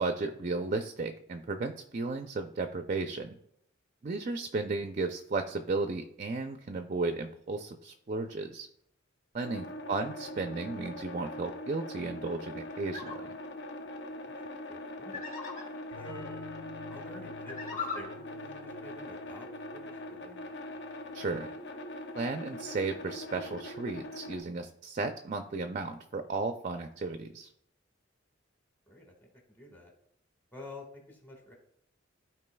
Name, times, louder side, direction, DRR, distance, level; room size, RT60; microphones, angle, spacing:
voice 1, 0.0-3.4 4.0-8.7 9.3-13.3 21.1-21.5 22.1-27.5, right 3 dB, 40° right, 7 dB, 0.4 m, -34 dB
sound 1, 9.4-24.4, left 1 dB, 60° left, 0.8 m, -42 dB
voice 2, 9.5-9.8 14.7-15.2 15.9-16.4 16.9-20.5 28.8-29.1 29.5-29.9 30.5-31.5, left 1 dB, 10° left, 1 dB, 1.6 m, -49 dB
sound 2, 12.8-13.1 15.1-15.6 17.4-18.0, left 4 dB, 45° left, 3.0 m, -38 dB
sound 3, 15.9-21.4, left 6 dB, 85° left, 1.1 m, -52 dB
13.0 x 4.6 x 2.3 m, 0.72 s
head